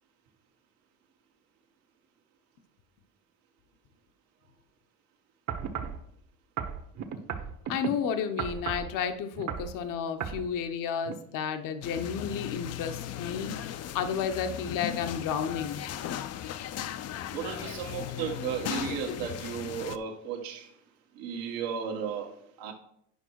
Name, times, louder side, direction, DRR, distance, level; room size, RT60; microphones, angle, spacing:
sound 1, 5.5-6.0 6.6-7.9 8.4-8.9 9.3-9.7 10.2-10.4 11.0-11.1, right 8 dB, 50° right, 1.2 m, -34 dB
voice 1, 7.7-15.9, left 7 dB, 60° left, 1.0 m, -32 dB
sound 2, 11.8-20.0, left 11 dB, 45° left, 0.6 m, -37 dB
voice 2, 17.3-20.7 21.1-22.7, right 7 dB, 70° right, 1.5 m, -34 dB
9.6 x 5.5 x 4.7 m
supercardioid pair, 100°, 36 cm